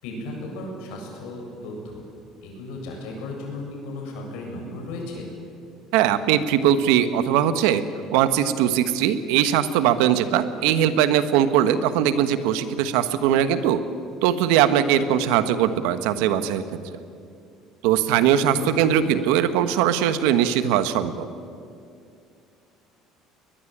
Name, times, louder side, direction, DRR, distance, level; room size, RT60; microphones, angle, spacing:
voice 1, 0.0-2.0 2.4-5.3 18.5-18.7, left 2 dB, 85° left, 1 dB, 7.6 m, -35 dB
voice 2, 5.9-7.8 8.1-13.8 14.2-16.8 17.8-21.3, right 10 dB, 90° right, 11 dB, 1.4 m, -20 dB
21.5 x 20.5 x 8.8 m, 2.4 s
cardioid pair, 125°, 0 cm